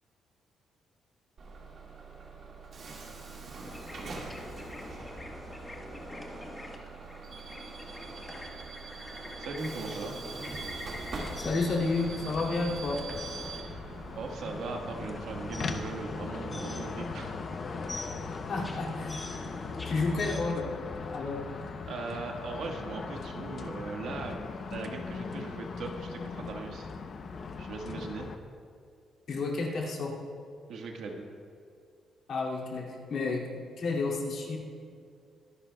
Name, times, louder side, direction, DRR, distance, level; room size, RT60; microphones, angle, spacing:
Bus / Alarm, 1.4-16.0, right 4 dB, 45° right, 1.8 m, -44 dB
sound 1, 3.6-20.4, left 1 dB, 15° left, 1.2 m, -45 dB
voice 1, 9.4-10.2 13.5-17.3 21.9-26.9 27.6-28.3 30.7-31.3, right 3 dB, 65° right, 2 dB, 1.4 m, -39 dB
sound 2, 11.1-28.4, left 4 dB, 35° left, 0.6 m, -40 dB
voice 2, 11.4-13.0 18.5-19.3 19.8-21.5 29.3-30.2 32.3-34.6, left 3 dB, 50° left, -3 dB, 2.3 m, -31 dB
24.0 x 11.5 x 2.2 m, 2.3 s
cardioid pair, 175°, 0 cm